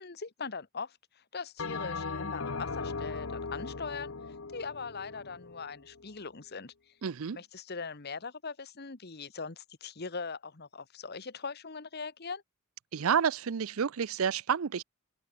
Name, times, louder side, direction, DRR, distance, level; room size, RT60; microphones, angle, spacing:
voice 1, 0.0-4.1 4.5-6.7 7.3-12.4, left 4 dB, 50° left, 1.2 m, -41 dB
Bell, 1.6-6.2, left 4 dB, 65° left, 1.0 m, -38 dB
voice 2, 7.0-7.4 12.9-14.8, right 7 dB, 75° right, 0.5 m, -29 dB
open air
head